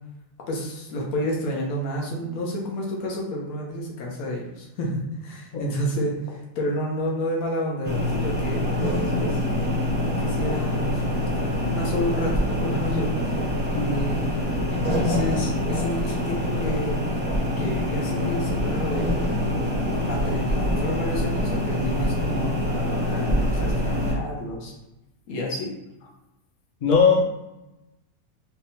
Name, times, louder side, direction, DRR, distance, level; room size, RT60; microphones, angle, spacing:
voice 1, 0.5-9.4 10.2-13.4 13.7-17.2 17.6-19.3 20.1-24.7 25.3-25.7 27.2-27.3, equal, 80° left, -1 dB, 1.2 m, -30 dB
sound 1, 7.8-24.1, left 1 dB, 15° right, 0.4 m, -25 dB
voice 2, 26.8-27.2, left 5 dB, 50° left, 0 dB, 0.6 m, -18 dB
3.4 x 2.8 x 2.7 m, 0.96 s
omnidirectional pair, 1.5 m